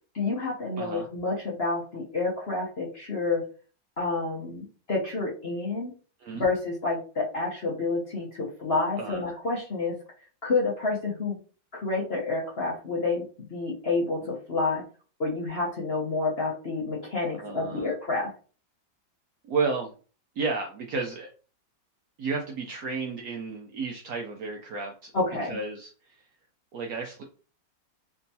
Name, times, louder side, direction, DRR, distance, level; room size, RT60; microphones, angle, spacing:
voice 1, 0.1-3.4 4.0-5.9 6.3-10.0 10.4-11.4 11.7-14.8 15.2-18.3 25.1-25.6, left 3 dB, 45° left, -4 dB, 0.8 m, -29 dB
voice 2, 0.8-1.1 6.2-6.4 9.0-9.4 17.4-17.9 19.4-19.9 20.4-21.3 22.2-25.1 25.4-26.2 26.7-27.2, right 4 dB, 70° right, 2 dB, 0.9 m, -32 dB
3.5 x 2.9 x 2.7 m, 0.37 s
omnidirectional pair, 2.0 m